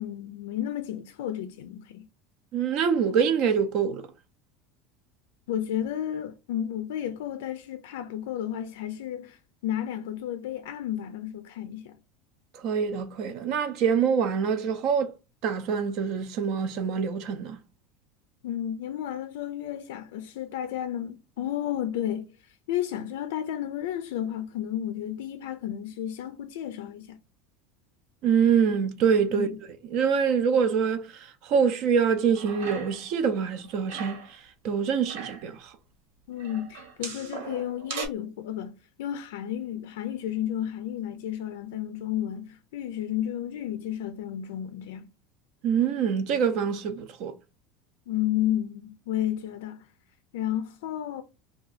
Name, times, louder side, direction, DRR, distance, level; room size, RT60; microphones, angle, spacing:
voice 1, 0.0-2.0 5.5-12.0 18.4-22.3 22.7-27.2 29.3-29.6 36.3-45.1 48.1-49.9 50.3-51.2, left 11 dB, 80° left, 0.4 m, -32 dB
voice 2, 2.5-4.1 12.5-15.1 15.4-17.6 28.2-29.5 29.9-34.4 34.6-35.7 45.6-47.3, right 7 dB, 40° right, 0.5 m, -25 dB
sound 1, 32.3-33.2 33.4-34.3 34.9-35.5 36.4-38.1, right 6 dB, 80° right, 1.3 m, -39 dB
2.7 x 2.3 x 4.0 m
cardioid pair, 175°, 0 cm